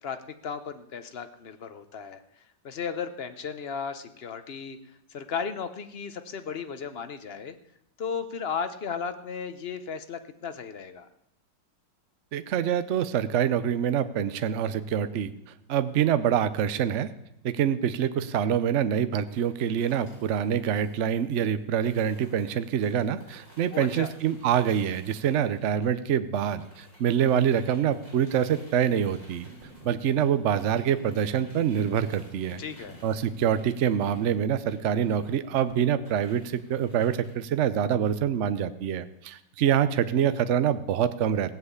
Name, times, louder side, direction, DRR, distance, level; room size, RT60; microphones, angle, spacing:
voice 1, 0.4-2.2 2.6-4.8 5.1-7.5 8.0-11.1 23.7-24.1 32.6-33.0, left 6 dB, 45° left, 10 dB, 0.9 m, -35 dB
voice 2, 12.3-15.3 15.7-17.1 17.4-29.5 29.8-32.6 33.0-41.5, right 9 dB, 55° right, 12 dB, 0.8 m, -25 dB
sound 1, 19.3-26.2 26.5-37.3, equal, 20° left, 6.8 m, -55 dB
sound 2, 29.3-36.6, right 1 dB, 75° right, 3.5 m, -51 dB
16.5 x 7.8 x 8.2 m, 0.78 s
omnidirectional pair, 1.9 m